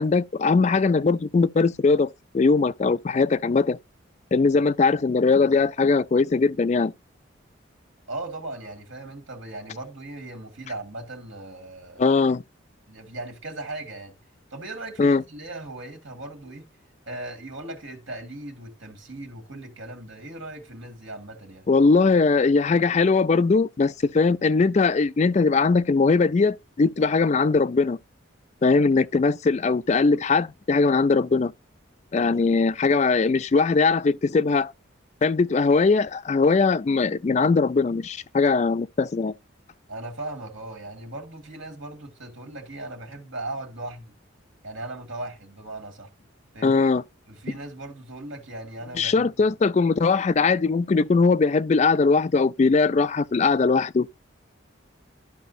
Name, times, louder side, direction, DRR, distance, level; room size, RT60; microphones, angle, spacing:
voice 1, 0.0-3.8 4.3-6.9 12.0-12.4 15.0-15.2 21.7-28.0 28.6-31.5 32.1-34.7 35.2-39.3 46.6-47.0 49.0-54.1, left 4 dB, 35° left, 0.3 m, -20 dB
voice 2, 8.1-12.1 12.9-14.2 14.5-16.7 17.1-21.7 39.9-44.1 44.6-46.1 46.5-46.8 47.3-49.3, right 2 dB, 70° right, 2.3 m, -38 dB
12.5 x 5.0 x 2.7 m
head